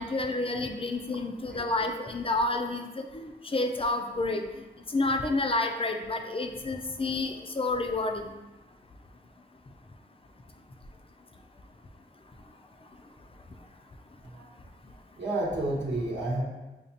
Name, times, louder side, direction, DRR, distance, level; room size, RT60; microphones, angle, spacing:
voice 1, 0.0-4.4 4.9-8.3, left 2 dB, 30° left, 4 dB, 0.4 m, -29 dB
voice 2, 15.2-16.4, right 2 dB, 90° right, -6 dB, 1.0 m, -30 dB
5.1 x 2.4 x 2.7 m, 1.1 s
cardioid pair, 50°, 18 cm